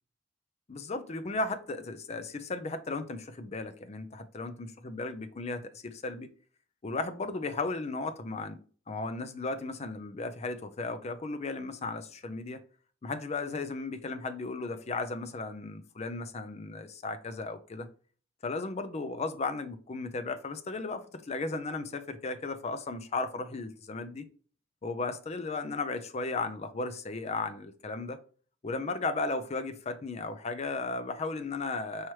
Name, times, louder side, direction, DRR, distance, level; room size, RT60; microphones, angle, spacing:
voice 1, 0.7-6.3 6.8-8.6 8.9-12.6 13.0-17.9 18.4-24.2 24.8-28.2 28.6-32.1, left 3 dB, 35° left, 0.5 m, -35 dB
4.7 x 3.0 x 3.1 m
head